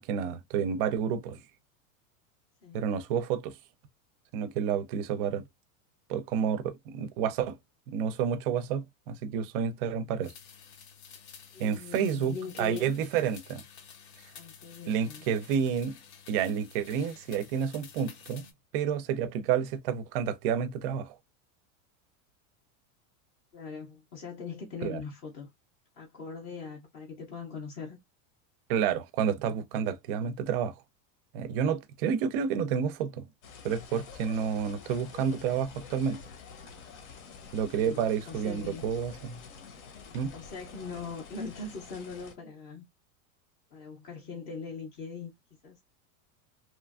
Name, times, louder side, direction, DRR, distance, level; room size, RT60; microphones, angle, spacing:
voice 1, 0.0-1.4 2.7-3.5 4.3-5.4 6.1-7.6 7.9-10.3 11.6-13.6 14.9-16.0 16.3-18.5 18.7-21.1 24.8-25.0 28.7-30.7 31.3-33.2 33.6-36.2 37.5-39.4 40.1-40.3, right 7 dB, 45° right, 0.4 m, -30 dB
sound 1, 10.2-18.5, left 7 dB, 55° left, 0.7 m, -52 dB
voice 2, 11.5-12.9 14.3-15.2 23.5-25.5 26.0-28.0 37.7-38.8 40.3-42.8 43.7-45.3 45.6-45.8, left 5 dB, 20° left, 0.4 m, -41 dB
sound 2, 33.4-42.3, left 5 dB, 75° left, 0.9 m, -48 dB
2.9 x 2.4 x 2.3 m
supercardioid pair, 165°, 41 cm